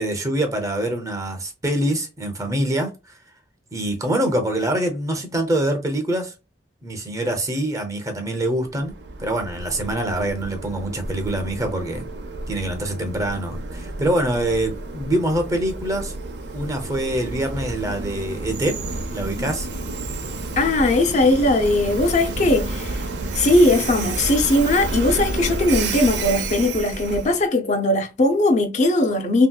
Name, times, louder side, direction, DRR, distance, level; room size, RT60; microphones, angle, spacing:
voice 1, 0.0-3.2 3.7-6.3 6.8-8.9 9.2-12.1 12.5-18.8 19.1-19.7, right 1 dB, 20° right, 0.6 m, -25 dB
Train, 8.6-27.4, right 2 dB, 70° right, 0.6 m, -30 dB
voice 2, 20.6-23.1 23.3-29.5, left 2 dB, 40° left, 0.4 m, -19 dB
3.1 x 2.7 x 2.2 m
head